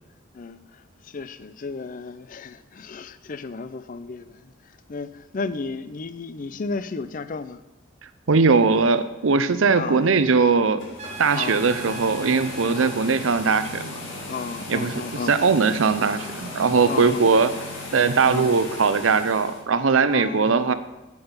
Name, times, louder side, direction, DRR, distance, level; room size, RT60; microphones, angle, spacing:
voice 1, 0.3-7.6 9.8-10.1 11.3-11.7 12.7-13.0 14.3-15.4 16.8-17.5 18.2-18.6 20.1-20.7, left 4 dB, 40° left, 0.4 m, -34 dB
voice 2, 8.3-10.9 11.2-13.9 14.7-15.0 15.3-17.5 17.9-20.7, right 4 dB, 75° right, 0.6 m, -20 dB
sound 1, 10.8-19.6, left 2 dB, 65° left, 2.1 m, -36 dB
Trumpet, 11.0-13.0, right 5 dB, 35° right, 0.7 m, -40 dB
8.9 x 7.8 x 5.6 m
head